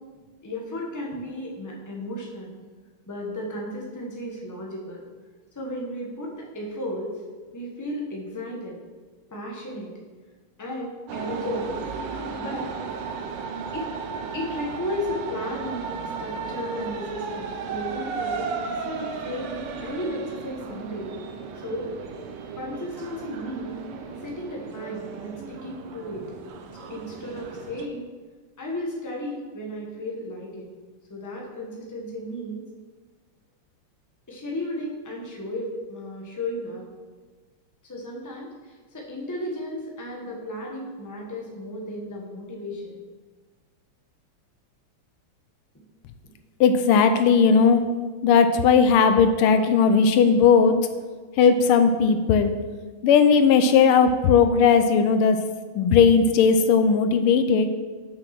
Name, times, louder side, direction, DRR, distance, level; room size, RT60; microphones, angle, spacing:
voice 1, 0.4-2.5 3.1-5.0 5.5-7.1 7.5-8.8 9.3-9.9 10.6-11.8 12.4-12.7 13.7-21.1 21.5-21.9 22.6-23.7 24.2-26.2 26.7-28.0 28.6-30.7 31.1-32.6 34.3-36.9 37.8-43.0, left 1 dB, 10° left, -2 dB, 1.0 m, -34 dB
sound 1, 11.1-27.9, right 5 dB, 80° right, 1.7 m, -35 dB
voice 2, 46.6-47.8 48.2-50.8 51.4-52.5 53.0-55.4 55.7-57.7, left 6 dB, 80° left, 8 dB, 1.5 m, -17 dB
6.6 x 6.1 x 5.9 m, 1.4 s
omnidirectional pair, 2.4 m